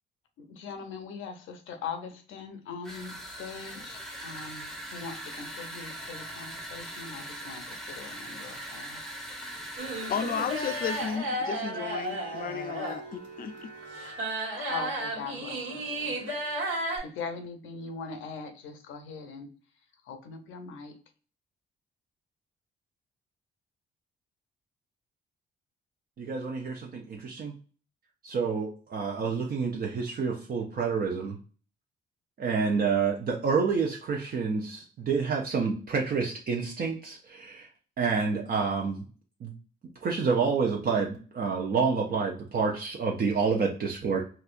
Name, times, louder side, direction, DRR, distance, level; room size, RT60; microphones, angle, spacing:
voice 1, 0.4-9.1 14.6-16.2 17.0-19.5 20.0-21.0, left 5 dB, 80° left, 0.7 m, -41 dB
sound 1, 2.8-11.2, right 1 dB, ahead, 0.7 m, -41 dB
sound 2, 9.8-17.0, right 1 dB, 80° right, 1.6 m, -34 dB
voice 2, 10.0-13.7, left 8 dB, 45° left, 0.5 m, -34 dB
voice 3, 26.2-27.5 28.2-31.4 32.4-37.7 38.0-39.0 39.4-39.5 40.0-44.2, right 5 dB, 50° right, 0.6 m, -28 dB
4.1 x 2.3 x 2.5 m
cardioid pair, 90°, 20 cm